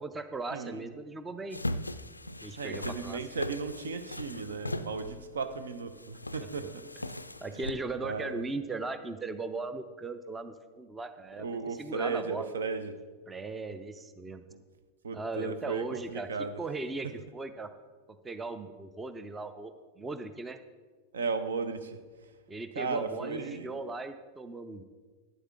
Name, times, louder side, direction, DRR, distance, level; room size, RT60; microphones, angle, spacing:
voice 1, 0.0-1.6 2.4-3.2 6.6-6.7 7.4-12.5 13.3-14.4 15.1-16.3 16.6-17.7 18.2-20.6 22.5-24.8, right 3 dB, 15° right, 11 dB, 0.5 m, -38 dB
voice 2, 0.5-0.9 2.6-7.2 7.5-7.7 8.0-8.5 11.4-13.0 14.5-14.6 15.0-16.6 17.0-17.1 21.1-22.0 22.8-23.9, right 4 dB, 65° right, 10 dB, 0.6 m, -36 dB
sound 1, 1.5-7.7, left 1 dB, 85° left, 0.3 m, -39 dB
11.5 x 9.4 x 3.6 m, 1.4 s
figure-of-eight pair, 90°, 0 cm